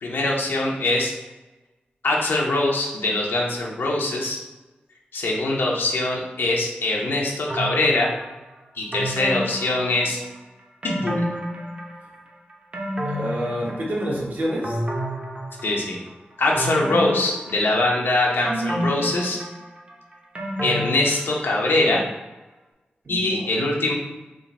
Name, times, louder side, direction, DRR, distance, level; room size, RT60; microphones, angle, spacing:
voice 1, 0.0-1.1 2.0-4.4 5.1-8.1 8.8-10.2 10.8-11.2 15.6-16.0 16.4-19.4 20.6-22.0 23.1-23.9, left 2 dB, 85° left, -2 dB, 0.9 m, -22 dB
sound 1, 7.5-8.3 8.9-10.4 10.8-12.2 12.5-14.2 14.6-16.0 16.5-18.0 18.4-21.7 22.0-22.1, equal, 30° right, 0.8 m, -30 dB
voice 2, 13.0-14.8 23.0-23.7, equal, 55° right, -4 dB, 1.2 m, -28 dB
3.7 x 2.6 x 4.1 m, 1.1 s
wide cardioid pair, 70°, 4 cm